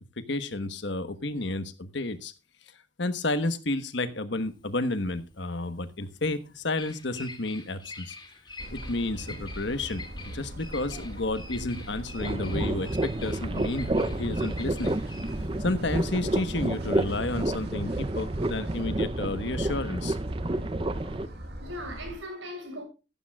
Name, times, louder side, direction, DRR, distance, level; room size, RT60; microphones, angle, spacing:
voice 1, 0.2-2.3 3.0-8.1 8.7-15.0 15.6-20.2, left 2 dB, 60° left, 1.2 m, -31 dB
Bird vocalization bird call bird song, 4.4-17.6, left 3 dB, 25° left, 2.3 m, -46 dB
sound 1, 8.6-22.2, right 1 dB, 55° right, 2.3 m, -40 dB
sound 2, 12.2-21.3, right 2 dB, 25° right, 0.6 m, -30 dB
voice 2, 20.5-22.8, equal, 80° right, 7.7 m, -41 dB
14.5 x 14.0 x 2.4 m
head